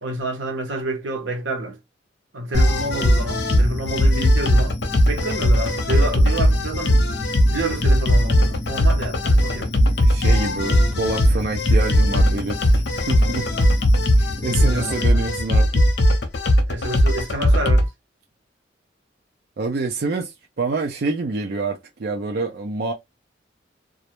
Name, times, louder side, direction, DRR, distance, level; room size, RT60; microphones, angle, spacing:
voice 1, 0.0-1.8 2.3-4.8 5.1-7.0 7.5-9.7 14.6-15.2 16.7-17.9, right 2 dB, 90° right, 0.8 m, -28 dB
sound 1, 2.5-17.9, equal, 65° left, 0.6 m, -18 dB
voice 2, 10.0-13.5 14.2-15.8 19.6-22.9, right 3 dB, 55° right, 0.4 m, -27 dB
2.3 x 2.0 x 2.8 m
head